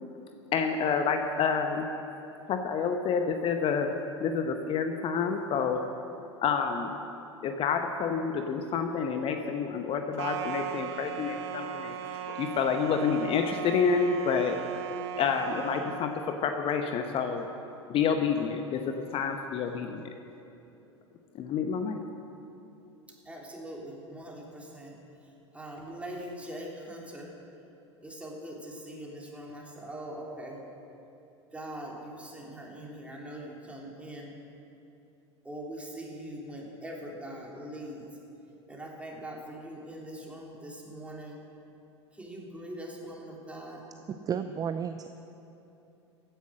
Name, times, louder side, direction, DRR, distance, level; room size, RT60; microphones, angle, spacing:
voice 1, 0.5-1.9 2.5-3.9 4.2-5.8 6.4-7.0 7.4-14.6 15.2-17.5 17.9-20.1 21.3-22.0, left 6 dB, 35° left, 6 dB, 0.9 m, -28 dB
sound 1, 10.2-16.1, right 9 dB, 65° right, 0.9 m, -37 dB
voice 2, 23.2-24.9 25.5-27.3 28.0-30.6 31.5-34.3 35.4-38.1 38.7-41.4 42.2-43.8, right 1 dB, 10° right, -3 dB, 3.3 m, -42 dB
voice 3, 44.1-45.1, right 7 dB, 25° right, 10 dB, 0.5 m, -32 dB
15.5 x 10.0 x 6.4 m, 2.8 s
figure-of-eight pair, 80°, 15 cm